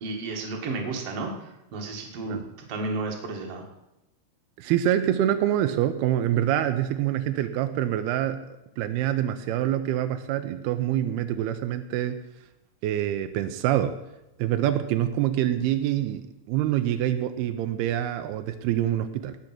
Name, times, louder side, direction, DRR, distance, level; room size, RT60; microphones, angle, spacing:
voice 1, 0.0-3.6, right 3 dB, 45° right, 1 dB, 2.5 m, -33 dB
voice 2, 4.6-12.2 12.8-14.0 14.4-19.4, right 11 dB, 85° right, 9 dB, 2.6 m, -26 dB
18.0 x 6.9 x 6.0 m, 0.91 s
omnidirectional pair, 4.5 m